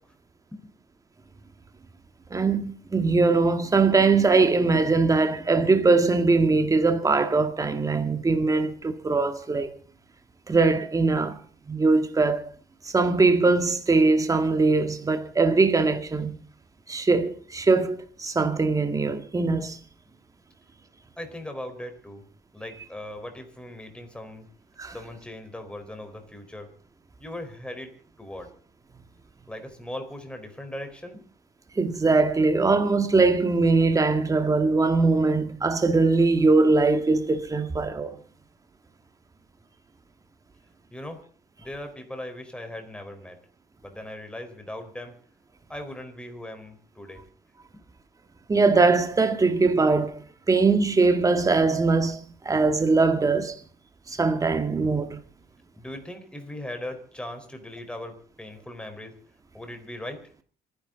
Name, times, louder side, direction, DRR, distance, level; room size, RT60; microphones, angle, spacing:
voice 1, 2.3-9.7 10.5-11.4 11.7-12.4 12.8-16.4 16.9-19.8 24.8-24.9 31.8-38.2 48.5-50.2 50.5-52.2 52.5-53.6 54.1-55.2, right 3 dB, 20° right, 2.0 m, -21 dB
voice 2, 21.2-22.3 22.5-24.5 24.9-26.7 27.2-28.5 29.5-31.3 40.9-41.2 41.6-43.4 43.8-45.2 45.7-47.2 47.7-47.8 55.8-59.1 59.5-60.3, left 1 dB, 5° left, 4.5 m, -39 dB
26.5 x 11.0 x 4.0 m
cardioid pair, 110°, 17 cm